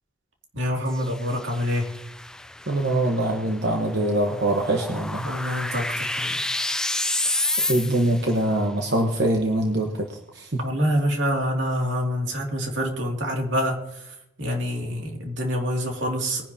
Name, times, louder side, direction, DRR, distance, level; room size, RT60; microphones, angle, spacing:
voice 1, 0.5-1.9 5.2-6.4 10.6-16.4, equal, 80° right, 1 dB, 2.4 m, -26 dB
sound 1, 0.9-8.3, left 2 dB, 5° left, 0.3 m, -30 dB
voice 2, 2.7-5.3 7.6-10.6, right 1 dB, 60° right, 1 dB, 1.1 m, -23 dB
20.5 x 10.5 x 2.8 m, 0.87 s
head